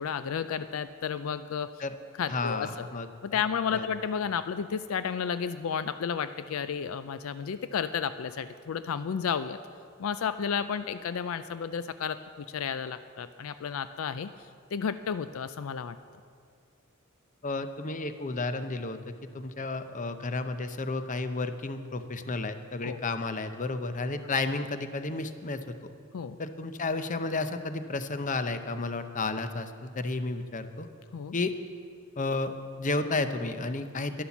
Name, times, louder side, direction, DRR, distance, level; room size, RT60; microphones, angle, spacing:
voice 1, 0.0-1.7 2.2-2.9 3.2-9.6 10.0-16.0 22.8-23.0 26.1-26.4 31.1-31.4, left 7 dB, 75° left, 12 dB, 0.4 m, -32 dB
voice 2, 2.3-3.4 3.7-3.9 17.4-25.8 26.4-30.9 31.3-31.5 32.2-32.5 32.8-34.2, left 3 dB, 35° left, 10 dB, 0.7 m, -32 dB
11.5 x 11.0 x 7.1 m, 2.2 s
head